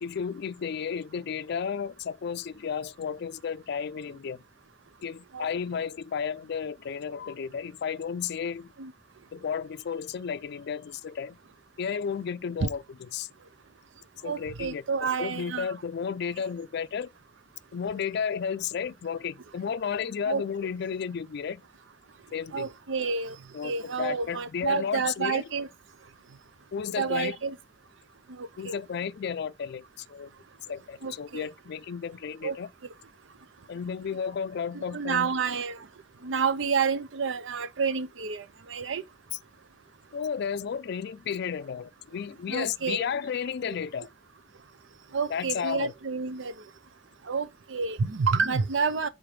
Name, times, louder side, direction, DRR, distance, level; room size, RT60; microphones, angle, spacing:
voice 1, 0.0-4.4 5.0-8.7 9.3-11.4 11.8-12.8 13.1-13.3 14.2-17.1 17.7-21.6 22.3-22.7 23.5-25.4 26.7-27.4 28.6-30.3 30.7-32.7 33.7-35.3 40.1-44.1 45.3-45.9, left 7 dB, 60° left, 0.4 m, -33 dB
voice 2, 14.2-15.7 20.3-20.4 22.5-23.4 23.6-25.7 27.0-27.6 28.3-28.8 31.0-31.5 32.4-32.6 34.7-35.8 36.2-39.0 42.5-43.0 45.1-46.5 47.3-49.1, right 5 dB, 80° right, 0.6 m, -29 dB
4.9 x 4.0 x 5.9 m
head